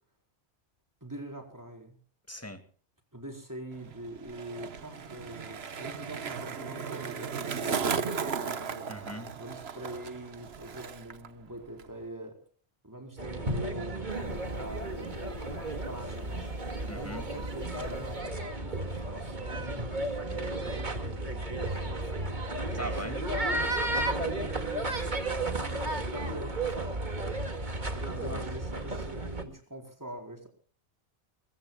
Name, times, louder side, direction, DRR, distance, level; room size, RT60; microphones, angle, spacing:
voice 1, 1.0-2.0 3.1-8.9 9.3-12.4 12.8-16.5 16.9-18.3 18.6-22.4 22.9-27.0 27.9-30.5, right 1 dB, 15° right, 4.4 m, -44 dB
voice 2, 2.3-2.6 8.9-9.3 16.8-17.3 22.7-23.2 28.2-28.5, equal, 10° left, 2.1 m, -40 dB
Skateboard, 3.7-11.3 11.5-12.0, right 6 dB, 65° right, 1.3 m, -36 dB
sound 1, 13.2-29.4, right 2 dB, 45° right, 2.3 m, -33 dB
sound 2, 14.1-18.2, right 1 dB, 75° left, 5.9 m, -51 dB
23.0 x 21.5 x 2.3 m
omnidirectional pair, 1.2 m